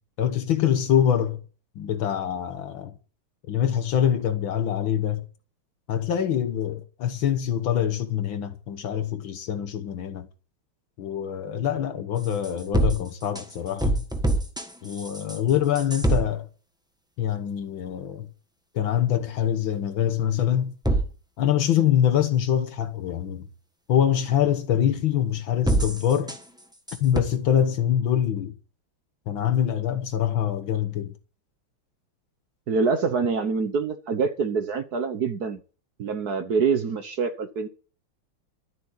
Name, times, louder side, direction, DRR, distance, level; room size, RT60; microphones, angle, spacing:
voice 1, 0.2-1.4 1.8-2.9 3.5-5.2 5.9-10.3 11.0-14.0 14.8-16.5 17.2-18.3 18.7-20.7 21.4-23.5 23.9-26.3 27.0-28.5 29.3-31.1, left 10 dB, 70° left, 1.8 m, -24 dB
sound 1, 12.2-16.2 20.8-21.0 25.6-26.6 26.9-27.2, right 2 dB, 5° right, 1.0 m, -25 dB
voice 2, 32.7-35.6 36.0-37.7, right 5 dB, 55° right, 1.3 m, -25 dB
12.5 x 7.8 x 8.5 m
omnidirectional pair, 2.4 m